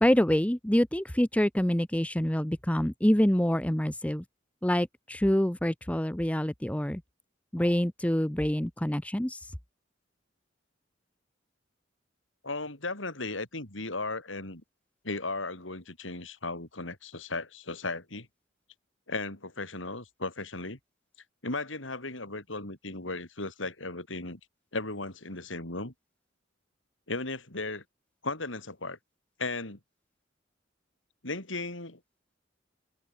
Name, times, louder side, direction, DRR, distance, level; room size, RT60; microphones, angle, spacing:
voice 1, 0.0-4.2 4.6-7.0 7.5-9.5, equal, 5° left, 0.9 m, -26 dB
voice 2, 12.4-14.6 15.0-18.3 19.1-20.8 21.4-24.4 24.7-25.9 27.1-27.8 28.2-29.0 29.4-29.8 31.2-32.0, left 3 dB, 90° left, 5.4 m, -36 dB
head